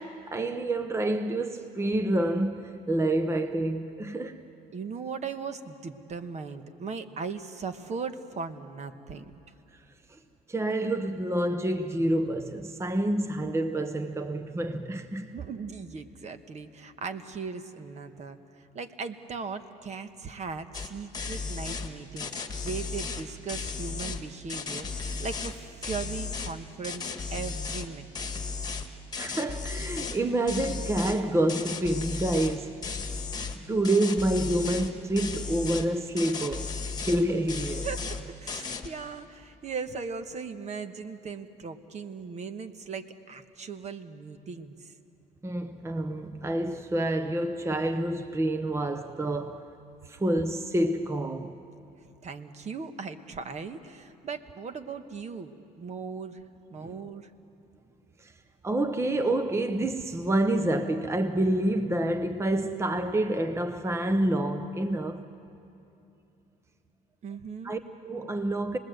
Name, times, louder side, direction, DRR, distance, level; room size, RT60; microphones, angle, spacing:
voice 1, 0.0-4.4 10.5-15.4 29.2-32.8 33.0-33.1 33.7-37.9 45.4-49.7 50.1-51.6 56.8-56.9 58.2-58.3 58.6-65.3 67.6-68.8, right 1 dB, 15° right, 0.8 m, -28 dB
voice 2, 4.7-9.3 15.3-28.3 37.8-44.9 52.1-56.4 56.7-57.3 67.2-67.7, right 5 dB, 40° right, 1.2 m, -38 dB
sound 1, 20.7-20.9 21.1-21.9 22.2-24.2 24.5-25.5 25.8-26.5 26.8-27.9 28.1-30.2 30.5-31.2 31.5-32.6 32.8-33.6 33.8-34.9 35.2-35.8 36.2-37.2 37.5-38.2 38.5-38.9, left 4 dB, 25° left, 1.8 m, -35 dB
28.0 x 20.0 x 7.9 m
cardioid pair, 110°, 17 cm